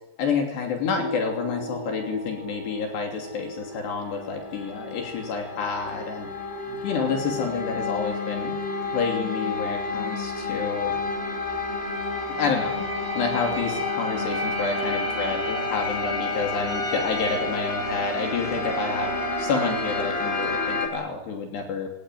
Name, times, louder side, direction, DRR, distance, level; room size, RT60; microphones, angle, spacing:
voice 1, 0.2-6.3 6.7-8.5 8.9-11.0 12.4-12.9 13.1-21.9, left 5 dB, 75° left, 3 dB, 5.1 m, -29 dB
sound 1, 1.0-20.9, left 2 dB, 15° left, 3.8 m, -30 dB
24.0 x 18.0 x 9.3 m, 0.85 s
omnidirectional pair, 4.9 m